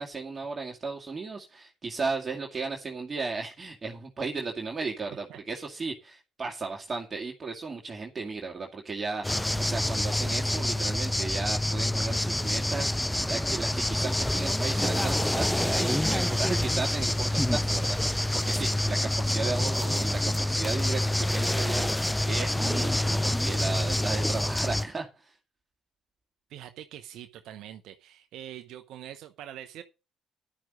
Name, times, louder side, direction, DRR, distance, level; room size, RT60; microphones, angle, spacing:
voice 1, 0.0-25.3, right 4 dB, 35° right, 2.2 m, -35 dB
voice 2, 5.3-5.6 26.5-29.8, right 11 dB, 65° right, 0.9 m, -44 dB
sound 1, 9.2-24.9, left 1 dB, 5° left, 0.5 m, -27 dB
11.5 x 6.1 x 6.3 m
hypercardioid pair, 55°, 0 cm